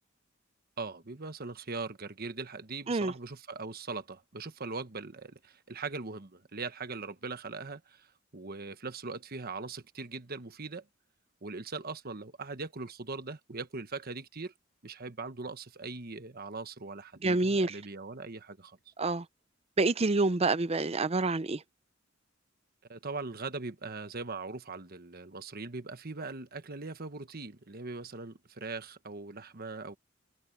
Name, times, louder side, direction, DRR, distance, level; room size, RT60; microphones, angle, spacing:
voice 1, 0.8-10.9 11.4-14.5 14.8-18.9 22.9-30.0, right 3 dB, 50° right, 1.2 m, -40 dB
voice 2, 17.2-17.7 19.0-19.2 19.8-21.6, right 3 dB, 30° right, 0.6 m, -27 dB
head